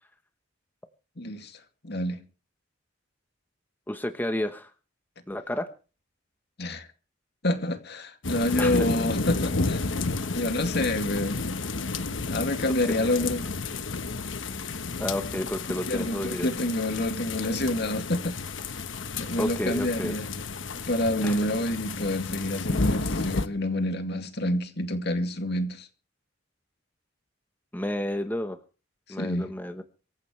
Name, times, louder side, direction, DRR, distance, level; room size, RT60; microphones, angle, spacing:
voice 1, 1.2-2.2 6.6-6.9 7.4-9.8 10.3-11.5 12.3-13.5 15.9-18.4 19.2-20.3 20.7-25.9 29.2-29.5, left 1 dB, 60° left, 2.4 m, -28 dB
voice 2, 3.9-4.7 5.3-5.7 8.6-8.9 10.2-10.4 12.9-13.1 15.0-16.5 19.4-20.1 21.2-21.4 27.7-28.6 29.1-29.8, left 1 dB, 10° left, 1.1 m, -31 dB
sound 1, 8.2-23.5, left 3 dB, 85° left, 1.2 m, -31 dB
24.5 x 14.5 x 3.3 m
head